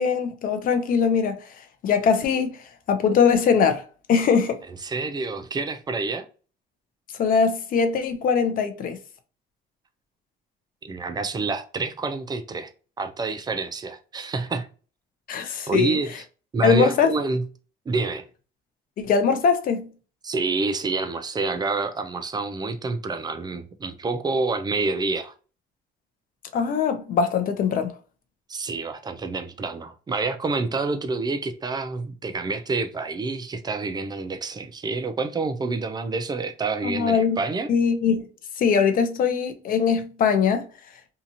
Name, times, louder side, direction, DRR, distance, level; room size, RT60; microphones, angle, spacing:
voice 1, 0.0-1.4 1.8-3.8 4.1-4.6 7.2-9.0 15.3-16.0 16.6-17.1 19.0-19.9 26.5-27.9 36.8-37.4 37.7-38.3 38.6-40.6, left 6 dB, 55° left, 0.6 m, -21 dB
voice 2, 4.8-6.3 10.8-12.7 13.0-14.7 15.7-16.2 16.5-17.4 17.9-18.2 20.2-25.3 28.5-37.7, right 3 dB, 25° right, 0.5 m, -28 dB
2.8 x 2.4 x 2.7 m
cardioid pair, 110°, 17 cm